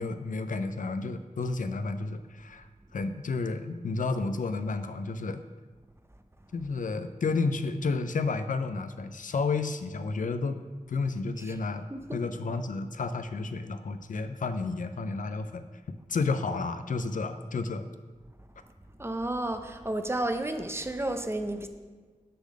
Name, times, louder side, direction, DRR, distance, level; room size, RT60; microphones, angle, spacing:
voice 1, 0.0-5.4 6.5-10.6 10.9-11.8 12.1-15.7 16.1-17.9, left 3 dB, 85° left, 10 dB, 0.4 m, -31 dB
voice 2, 19.0-21.7, right 1 dB, 20° right, 7 dB, 0.5 m, -32 dB
6.8 x 3.8 x 6.3 m, 1.4 s
wide cardioid pair, 75°, 13 cm